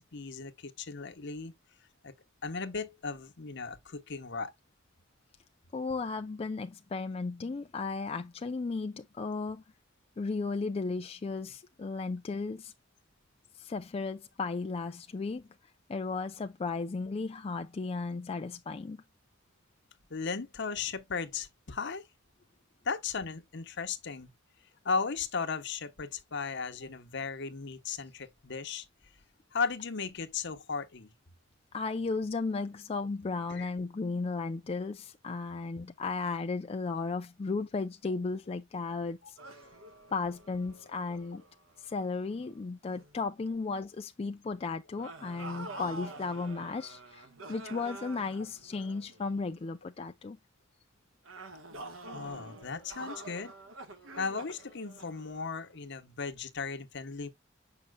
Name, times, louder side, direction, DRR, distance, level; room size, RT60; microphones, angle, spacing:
voice 1, 0.0-1.5 2.0-2.1 2.4-4.5 20.1-22.0 22.8-24.3 24.8-28.9 29.5-31.1 33.5-33.7 52.1-53.5 54.2-57.3, left 5 dB, 60° left, 1.0 m, -36 dB
voice 2, 5.7-9.6 10.2-12.7 13.5-15.4 15.9-19.0 31.7-39.4 40.1-41.4 41.8-50.4, left 4 dB, 30° left, 0.4 m, -35 dB
sound 1, 39.4-42.5 42.9-43.2 45.0-49.6 51.2-55.8, right 2 dB, 75° right, 1.3 m, -47 dB
7.5 x 5.7 x 2.2 m
head